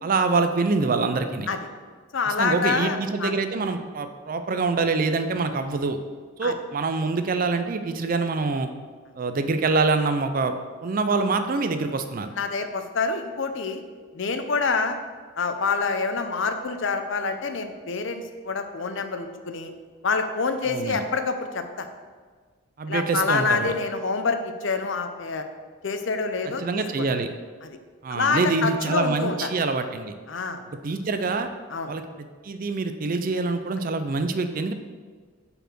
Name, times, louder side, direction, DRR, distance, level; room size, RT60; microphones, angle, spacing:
voice 1, 0.0-1.5 2.3-6.0 6.4-8.7 9.2-10.5 10.8-12.3 20.7-21.0 22.8-23.7 26.6-27.3 28.0-30.1 30.8-31.5 31.9-34.7, right 3 dB, 40° right, 8 dB, 0.4 m, -25 dB
voice 2, 2.1-3.3 6.4-6.5 12.3-13.8 14.1-15.0 15.4-19.7 20.0-21.9 22.9-25.4 25.8-27.1 27.6-27.8 28.1-29.5 30.3-30.6 31.7-31.9, left 4 dB, 60° left, 8 dB, 0.6 m, -27 dB
5.5 x 4.3 x 5.9 m, 1.5 s
head